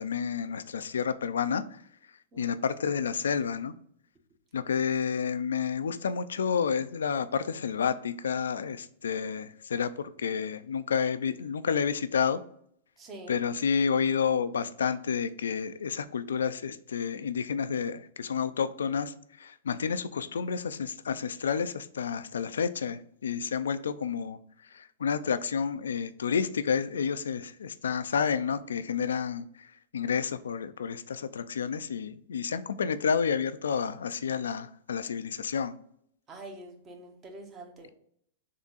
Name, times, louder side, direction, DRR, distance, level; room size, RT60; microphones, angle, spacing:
voice 1, 0.0-1.8 2.4-3.7 4.5-12.4 13.3-24.4 24.7-35.8, left 6 dB, 85° left, 13 dB, 0.4 m, -30 dB
voice 2, 13.0-13.4 36.3-37.9, right 2 dB, 25° right, 3 dB, 1.1 m, -45 dB
3.7 x 3.5 x 4.0 m, 0.67 s
hypercardioid pair, 120°, 0 cm